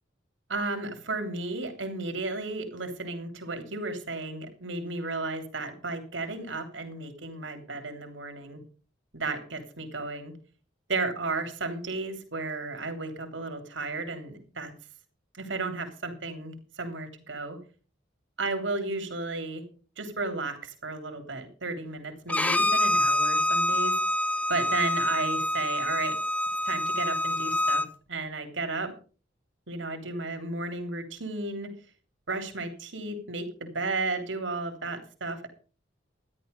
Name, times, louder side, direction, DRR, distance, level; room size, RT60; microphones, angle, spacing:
voice 1, 0.5-8.6 9.1-10.3 10.9-14.7 15.3-17.6 18.4-19.6 20.0-24.0 24.5-26.2 26.6-27.8 28.1-28.9 29.7-31.7 32.3-35.5, right 3 dB, 80° right, 6 dB, 3.2 m, -33 dB
Bowed string instrument, 22.3-27.9, left 1 dB, 10° left, 0.5 m, -26 dB
13.0 x 11.0 x 5.3 m, 0.38 s
head